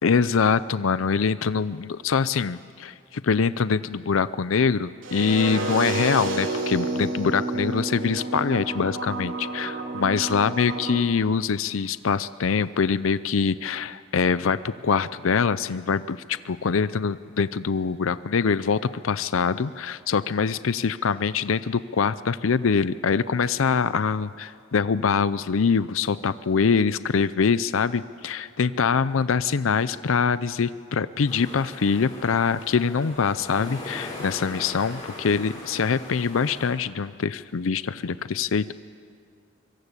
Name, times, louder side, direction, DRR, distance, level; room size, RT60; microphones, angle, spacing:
voice 1, 0.0-38.7, left 5 dB, 90° left, 15 dB, 0.6 m, -24 dB
sound 1, 5.0-11.0, right 2 dB, 75° right, 3.5 m, -30 dB
sound 2, 31.2-36.7, left 2 dB, 20° left, 6.9 m, -40 dB
24.5 x 23.0 x 8.3 m, 2.2 s
head